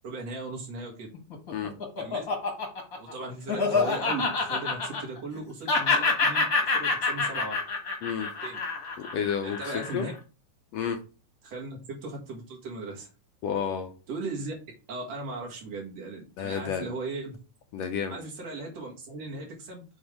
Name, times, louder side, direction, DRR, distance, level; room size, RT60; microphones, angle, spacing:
voice 1, 0.0-1.1 2.0-2.3 3.0-7.6 8.4-8.6 9.4-10.1 11.4-13.1 14.1-14.5 14.9-17.4 18.1-19.8, right 2 dB, 60° right, -1 dB, 2.8 m, -37 dB
Laughter, 1.1-5.4 5.7-10.1, left 4 dB, 40° left, 1.5 m, -27 dB
voice 2, 9.0-10.0 10.7-11.0 13.4-13.9 16.4-16.9 17.7-18.2, left 7 dB, 75° left, 6 dB, 1.7 m, -31 dB
7.3 x 3.5 x 4.9 m, 0.34 s
omnidirectional pair, 3.4 m